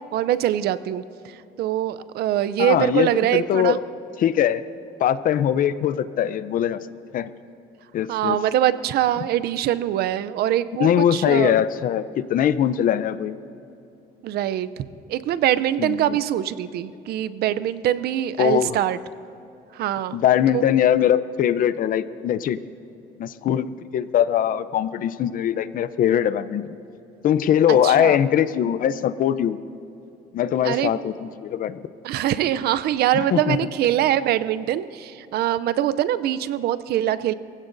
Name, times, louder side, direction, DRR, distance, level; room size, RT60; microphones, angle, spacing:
voice 1, 0.1-3.8 8.1-11.5 14.2-14.7 15.1-19.0 19.7-20.2 20.5-20.6 27.7-28.2 30.6-31.0 32.0-37.3, right 12 dB, 70° right, 14 dB, 0.5 m, -23 dB
voice 2, 2.6-3.8 4.2-4.6 5.0-6.9 7.1-7.3 7.9-8.4 10.8-13.4 15.8-16.1 18.4-18.8 20.1-22.6 23.2-23.7 23.9-26.6 27.2-29.6 30.3-31.8 33.3-33.6, left 10 dB, 55° left, 14 dB, 0.6 m, -21 dB
23.5 x 16.0 x 2.6 m, 2.9 s
cardioid pair, 110°, 17 cm